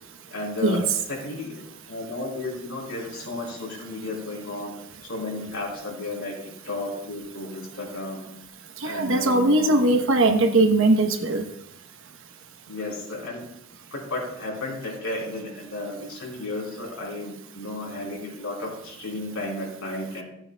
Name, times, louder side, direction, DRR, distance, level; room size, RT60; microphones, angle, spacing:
voice 1, 0.3-0.8 1.1-8.2 8.8-10.0 12.7-13.5 13.9-20.2, left 2 dB, 90° left, -3 dB, 4.0 m, -33 dB
voice 2, 8.8-11.4, right 2 dB, 65° right, 5 dB, 1.0 m, -20 dB
15.5 x 8.6 x 2.3 m, 0.78 s
head